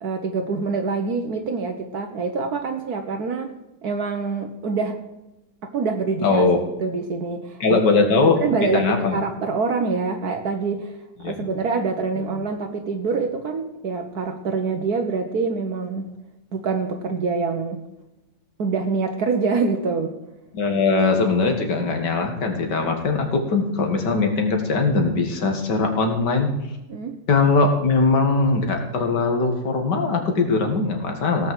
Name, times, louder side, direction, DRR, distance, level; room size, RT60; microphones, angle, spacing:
voice 1, 0.0-3.5 3.8-5.0 5.6-6.4 6.8-10.9 11.2-16.1 16.5-17.8 18.6-20.2 26.9-27.2, right 4 dB, 65° right, 5 dB, 1.5 m, -25 dB
voice 2, 6.2-6.6 7.6-8.4 8.7-9.2 11.2-11.5 12.1-12.2 20.5-26.5 27.3-31.5, left 3 dB, 75° left, 4 dB, 2.5 m, -20 dB
17.0 x 6.0 x 7.7 m, 0.97 s
omnidirectional pair, 1.9 m